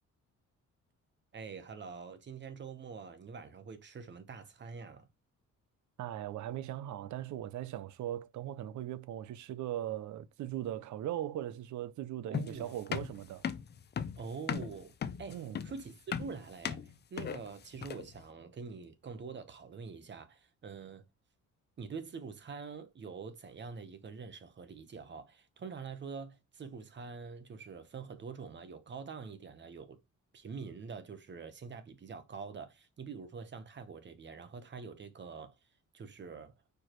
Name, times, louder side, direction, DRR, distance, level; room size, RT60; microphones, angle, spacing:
voice 1, 1.3-5.1 12.2-12.8 14.2-21.0 21.8-30.0 30.3-35.6 35.9-36.5, right 5 dB, 35° right, 0.9 m, -45 dB
voice 2, 6.0-13.4 15.3-15.6, right 12 dB, 70° right, 0.6 m, -39 dB
sound 1, 12.3-18.2, left 7 dB, 35° left, 0.5 m, -37 dB
4.7 x 4.6 x 4.4 m
cardioid pair, 160°, 31 cm